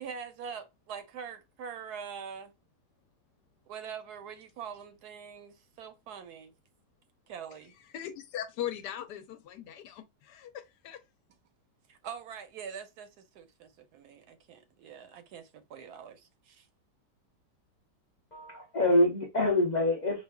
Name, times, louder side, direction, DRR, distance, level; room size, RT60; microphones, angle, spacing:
voice 1, 0.0-2.5 3.7-6.5 7.3-7.7 11.9-16.7, right 7 dB, 75° right, 1.1 m, -44 dB
voice 2, 7.8-11.0, left 11 dB, 75° left, 1.1 m, -39 dB
voice 3, 18.3-20.2, left 1 dB, 60° left, 0.4 m, -26 dB
5.0 x 2.3 x 2.2 m
omnidirectional pair, 1.9 m